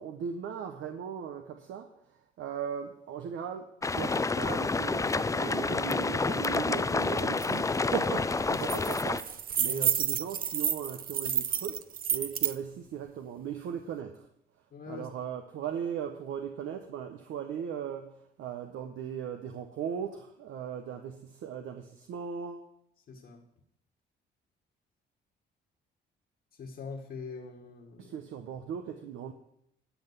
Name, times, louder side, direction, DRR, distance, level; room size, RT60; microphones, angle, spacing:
voice 1, 0.0-1.9 2.4-11.8 12.1-14.3 14.9-22.7 28.0-29.3, right 8 dB, 80° right, 5 dB, 1.0 m, -38 dB
sound 1, 3.8-9.2, left 3 dB, 15° left, 0.4 m, -29 dB
sound 2, 7.4-7.5 7.8-8.1 8.4-12.5, right 8 dB, 45° right, 0.7 m, -30 dB
voice 2, 14.7-15.1 23.1-23.4 26.5-28.2, left 5 dB, 60° left, -1 dB, 1.9 m, -43 dB
11.5 x 5.9 x 8.3 m, 0.75 s
cardioid pair, 90°, 20 cm